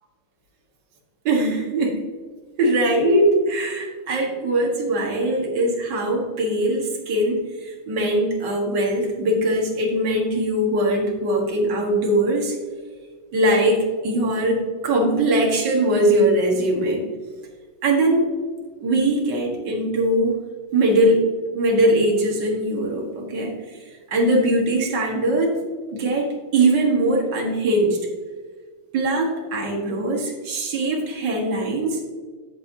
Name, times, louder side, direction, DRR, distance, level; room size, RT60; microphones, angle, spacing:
voice 1, 1.3-2.0 2.6-12.6 13.3-17.0 17.8-18.2 18.8-20.4 20.7-23.5 24.1-25.6 25.9-28.0 28.9-32.0, right 1 dB, 55° right, -1 dB, 2.2 m, -21 dB
14.0 x 5.7 x 2.8 m, 1.5 s
omnidirectional pair, 2.4 m